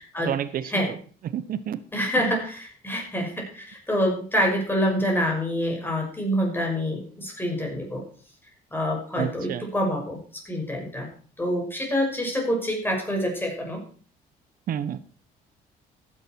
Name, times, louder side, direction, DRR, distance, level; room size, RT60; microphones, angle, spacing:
voice 1, 0.3-0.7 1.2-1.8 9.2-9.6 14.7-15.0, right 10 dB, 60° right, 14 dB, 1.1 m, -29 dB
voice 2, 1.9-8.0 8.7-11.1 11.4-13.8, equal, 10° left, 1 dB, 5.9 m, -26 dB
14.5 x 10.5 x 4.7 m, 0.43 s
cardioid pair, 110°, 17 cm